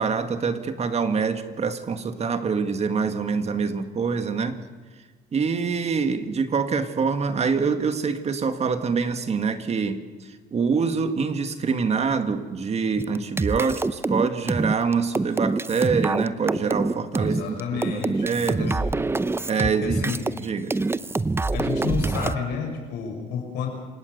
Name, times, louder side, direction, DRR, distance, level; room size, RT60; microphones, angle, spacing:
voice 1, 0.0-4.6 5.3-18.7 19.5-20.7, right 5 dB, 40° right, 8 dB, 2.0 m, -25 dB
sound 1, 13.0-20.5 20.7-22.4, right 3 dB, 15° right, 0.7 m, -25 dB
voice 2, 17.2-18.9 19.6-20.3 21.5-23.7, left 6 dB, 85° left, 3 dB, 6.8 m, -30 dB
28.0 x 17.5 x 6.8 m, 1.3 s
cardioid pair, 110°, 17 cm